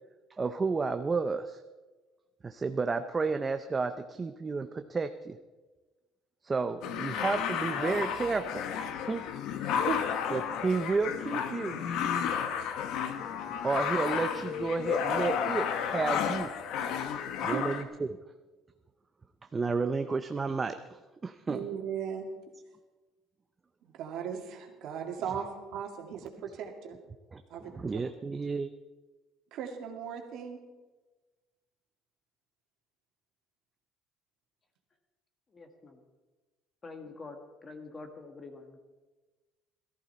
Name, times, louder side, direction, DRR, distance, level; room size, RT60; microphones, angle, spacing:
voice 1, 0.4-1.6 2.4-5.4 6.4-9.2 10.3-11.8 13.6-16.5 17.4-17.9 19.5-21.6 27.3-28.7, right 4 dB, 15° right, 8 dB, 0.5 m, -32 dB
sound 1, 6.8-17.8, left 8 dB, 60° left, 1.2 m, -32 dB
voice 2, 21.5-22.3 23.8-27.0 27.5-27.7 29.5-30.6, right 8 dB, 55° right, 2 dB, 2.3 m, -37 dB
voice 3, 35.5-36.0 36.8-38.8, left 3 dB, 20° left, 5 dB, 1.6 m, -46 dB
17.5 x 14.0 x 4.3 m, 1.2 s
cardioid pair, 165°, 0 cm